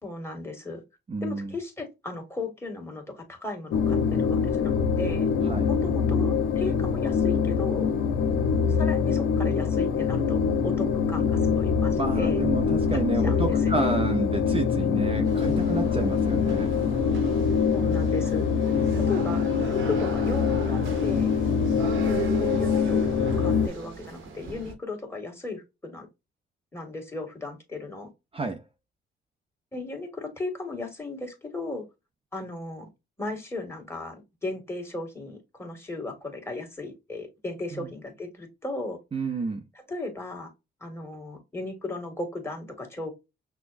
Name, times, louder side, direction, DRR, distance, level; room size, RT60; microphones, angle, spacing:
voice 1, 0.0-0.8 1.2-5.3 5.7-7.9 8.7-12.4 12.9-14.0 17.7-18.5 18.9-21.3 21.8-26.1 26.7-28.1 29.7-31.9 32.3-32.9 33.2-39.0 39.9-40.5 40.8-43.1, left 2 dB, 10° left, 2.0 m, -36 dB
voice 2, 1.1-1.5 5.4-5.7 12.0-16.7 28.3-28.6 37.7-37.9 39.1-39.7, right 3 dB, 30° right, 0.7 m, -30 dB
sound 1, 3.7-23.7, left 6 dB, 90° left, 0.7 m, -24 dB
sound 2, 15.2-24.7, right 7 dB, 80° right, 1.2 m, -38 dB
6.0 x 2.2 x 2.5 m
cardioid pair, 90°, 20 cm